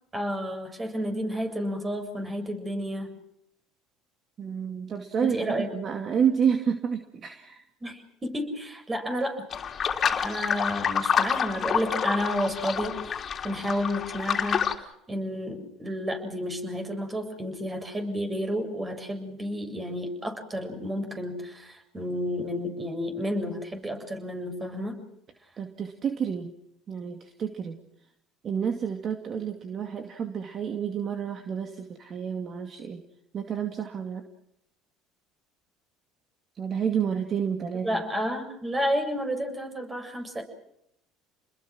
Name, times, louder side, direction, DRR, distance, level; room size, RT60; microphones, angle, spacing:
voice 1, 0.1-3.2 5.3-5.7 7.8-9.4 10.2-25.0 37.8-40.4, equal, 20° right, 5 dB, 7.3 m, -31 dB
voice 2, 4.4-7.6 25.6-26.5 26.9-27.8 28.4-33.0 33.3-34.2 36.6-38.0, right 7 dB, 45° right, 6 dB, 2.3 m, -29 dB
sound 1, 9.5-14.7, left 7 dB, 40° left, 3.4 m, -28 dB
29.5 x 21.0 x 6.3 m, 0.78 s
supercardioid pair, 85°, 0 cm